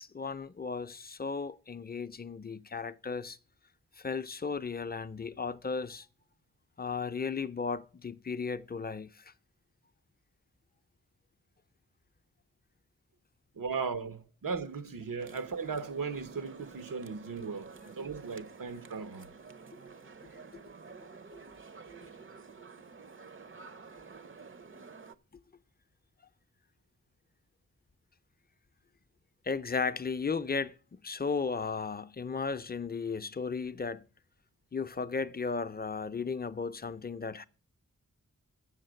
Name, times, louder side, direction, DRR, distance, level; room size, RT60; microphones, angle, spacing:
voice 1, 0.0-3.4 4.0-6.1 6.8-9.3 29.4-30.8 31.0-34.0 34.7-37.4, left 5 dB, 30° left, 0.5 m, -35 dB
voice 2, 13.5-19.3, right 5 dB, 85° right, 0.9 m, -37 dB
sound 1, 15.2-25.2, right 5 dB, 40° right, 0.6 m, -50 dB
7.5 x 6.6 x 7.7 m
wide cardioid pair, 70°, 32 cm